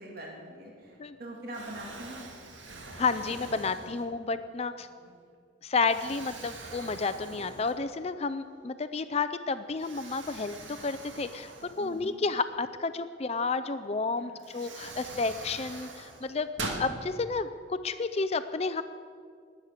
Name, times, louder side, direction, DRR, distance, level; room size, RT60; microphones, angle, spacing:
voice 1, 0.0-2.2 5.0-5.1 11.8-12.2 14.2-14.9, right 1 dB, 50° right, -1 dB, 2.4 m, -44 dB
Explosion, 0.8-1.2 1.5-4.4 5.0-5.1 5.8-8.1 8.4-8.5 9.8-12.4 13.8-13.9 14.4-16.9, right 2 dB, 75° right, 2.1 m, -43 dB
voice 2, 3.0-4.9 5.6-11.5 11.8-16.5 16.8-18.8, left 4 dB, 30° left, 12 dB, 0.4 m, -31 dB
21.0 x 8.3 x 6.6 m, 2.1 s
head